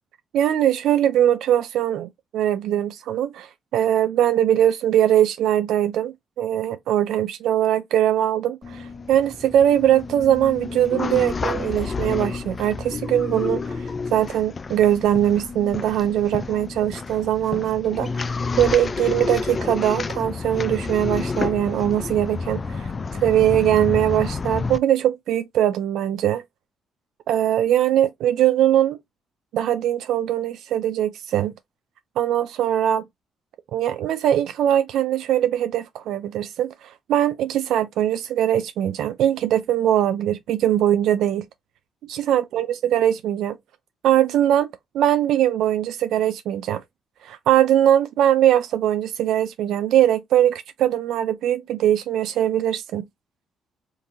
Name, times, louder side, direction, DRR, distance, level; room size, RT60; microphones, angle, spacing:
voice 1, 0.3-18.3 18.6-22.9 23.2-26.4 27.3-29.0 29.5-31.5 32.2-33.0 33.7-41.5 42.1-43.6 44.0-44.7 44.9-46.8 47.2-53.1, right 11 dB, 80° right, 0.3 m, -21 dB
sound 1, 8.6-24.8, left 4 dB, 35° left, 0.3 m, -30 dB
3.8 x 2.7 x 2.5 m
cardioid pair, 90°, 0 cm